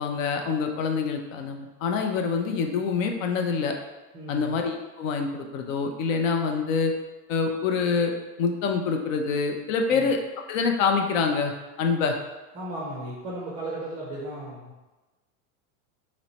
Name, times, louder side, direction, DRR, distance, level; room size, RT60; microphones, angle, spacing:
voice 1, 0.0-3.7 4.3-6.9 7.3-8.1 8.4-10.2 10.5-11.5 11.8-12.1, left 5 dB, 60° left, 4 dB, 0.6 m, -26 dB
voice 2, 4.1-4.5 9.9-10.1 12.5-14.7, right 1 dB, 15° right, -5 dB, 0.4 m, -35 dB
3.1 x 3.1 x 4.0 m, 1.1 s
supercardioid pair, 160°, 45 cm